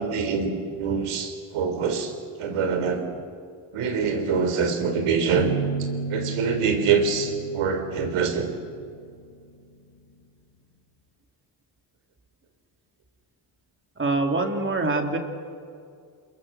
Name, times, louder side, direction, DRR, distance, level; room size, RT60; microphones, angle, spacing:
voice 1, 0.0-2.1 2.4-3.1 3.7-5.5 5.8-8.5, right 5 dB, 85° right, 7 dB, 4.0 m, -25 dB
sound 1, 5.4-9.1, right 2 dB, 85° left, 2.0 m, -32 dB
voice 2, 14.0-15.2, right 3 dB, 25° right, 3 dB, 2.9 m, -24 dB
28.5 x 22.5 x 7.4 m, 2.3 s
cardioid pair, 135°, 50 cm